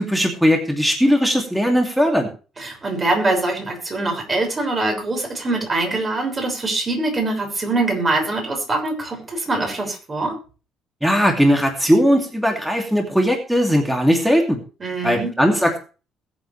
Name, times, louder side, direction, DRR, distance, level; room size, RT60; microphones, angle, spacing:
voice 1, 0.0-2.3 11.0-14.6 15.0-15.8, equal, ahead, 2 dB, 2.7 m, -18 dB
voice 2, 2.6-10.4 14.8-15.3, right 2 dB, 25° right, 2 dB, 6.2 m, -23 dB
21.0 x 8.2 x 3.4 m, 0.35 s
cardioid pair, 140°, 0 cm